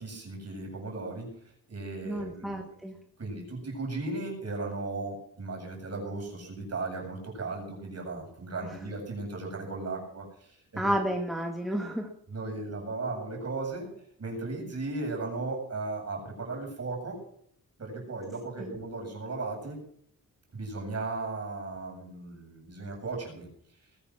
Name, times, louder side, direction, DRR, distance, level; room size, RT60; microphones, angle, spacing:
voice 1, 0.0-1.4 1.7-2.7 3.2-10.9 12.3-13.9 14.2-17.2 17.8-19.8 20.5-23.5, right 3 dB, 45° right, 1 dB, 7.9 m, -36 dB
voice 2, 2.0-3.0 10.8-12.1 18.6-18.8, equal, ahead, 2 dB, 1.8 m, -31 dB
21.0 x 9.5 x 6.0 m, 0.66 s
wide cardioid pair, 175°, 35 cm